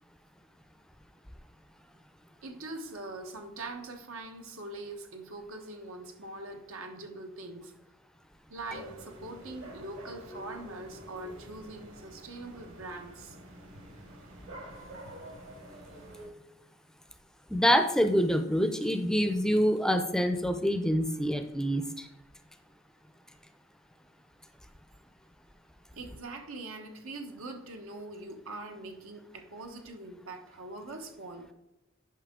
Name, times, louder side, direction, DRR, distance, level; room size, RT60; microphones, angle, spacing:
voice 1, 2.4-7.7 8.5-13.4 25.9-31.5, right 2 dB, 90° right, 4 dB, 1.2 m, -43 dB
sound 1, 8.7-16.3, right 1 dB, 65° right, 2.1 m, -47 dB
voice 2, 17.5-22.1, equal, 5° left, 7 dB, 0.4 m, -26 dB
10.0 x 5.4 x 3.7 m, 0.95 s
head